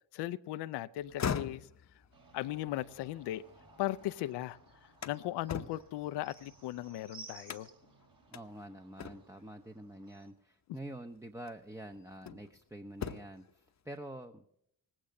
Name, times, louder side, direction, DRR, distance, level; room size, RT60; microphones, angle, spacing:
voice 1, 0.1-1.7 2.3-3.4 3.8-4.6 5.0-7.7, left 15 dB, 70° left, 0.5 m, -37 dB
sound 1, 1.0-4.1 4.5-6.9 7.4-7.9 8.3-8.5 9.0-9.5 10.7-10.9 11.5-12.6 12.9-13.5, left 7 dB, 40° left, 0.8 m, -41 dB
sound 2, 2.1-10.3, right 4 dB, 50° right, 3.1 m, -57 dB
voice 2, 8.3-14.4, right 1 dB, 5° right, 0.8 m, -47 dB
18.5 x 8.8 x 6.4 m
supercardioid pair, 50°, 42 cm